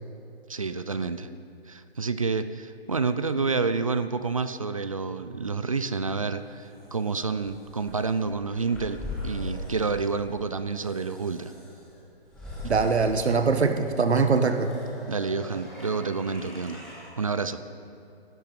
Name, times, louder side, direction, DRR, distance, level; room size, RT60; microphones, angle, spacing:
voice 1, 0.5-1.3 1.7-11.5 15.1-16.8 17.2-17.6, right 4 dB, 35° right, 12 dB, 0.4 m, -29 dB
sound 1, 6.0-17.1, left 1 dB, ahead, 1.9 m, -41 dB
voice 2, 12.6-14.7, right 4 dB, 90° right, 7 dB, 1.4 m, -22 dB
17.0 x 12.0 x 5.3 m, 2.8 s
hypercardioid pair, 165°, 32 cm